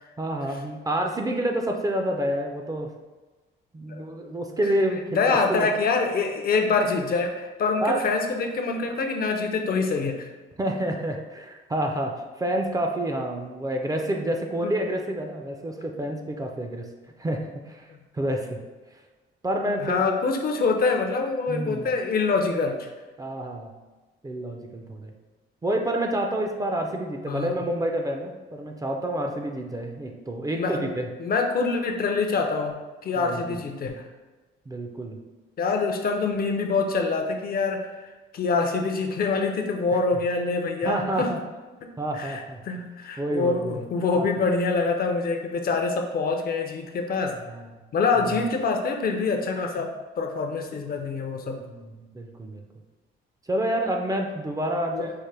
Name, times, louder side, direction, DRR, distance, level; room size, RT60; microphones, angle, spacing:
voice 1, 0.2-2.9 3.7-5.7 7.8-8.1 10.6-16.9 17.2-18.6 18.9-19.0 19.4-20.0 21.5-21.9 23.2-23.7 24.2-25.1 25.6-31.1 33.2-33.6 34.7-35.2 40.8-41.4 42.0-42.6 43.2-43.9 44.2-44.3 47.5-47.7 48.3-48.4 51.6-52.6 53.5-55.1, right 1 dB, 20° right, 2 dB, 0.4 m, -28 dB
voice 2, 5.1-10.3 14.6-14.8 19.8-22.9 27.3-27.5 30.5-30.9 31.2-32.8 33.0-34.0 35.6-41.3 41.8-47.3 47.9-51.6 54.9-55.1, left 4 dB, 50° left, 4 dB, 0.5 m, -25 dB
4.6 x 2.1 x 3.2 m, 1.2 s
cardioid pair, 90°, 20 cm